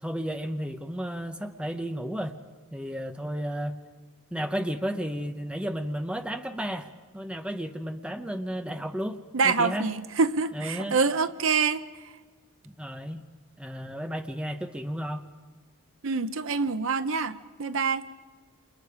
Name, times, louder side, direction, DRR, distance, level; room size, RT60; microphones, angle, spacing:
voice 1, 0.0-2.4 2.7-3.8 4.3-6.9 7.1-9.9 10.5-11.0 12.6-13.3 13.6-15.3, equal, 5° right, 0.9 m, -33 dB
voice 2, 9.3-11.8 16.0-18.0, right 4 dB, 60° right, 0.7 m, -26 dB
28.5 x 27.5 x 5.0 m
head